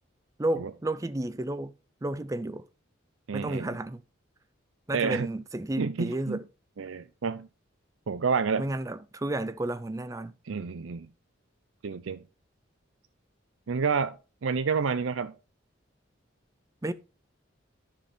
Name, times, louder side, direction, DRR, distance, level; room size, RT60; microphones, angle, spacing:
voice 1, 0.4-1.7 2.0-2.6 3.3-4.0 4.9-6.4 8.6-10.3 16.8-16.9, right 1 dB, 15° right, 0.4 m, -32 dB
voice 2, 3.3-3.8 4.9-5.3 5.8-6.4 6.8-7.5 8.1-8.7 10.5-11.1 11.8-12.2 13.7-15.3, right 5 dB, 75° right, 0.5 m, -29 dB
10.0 x 5.2 x 4.4 m
head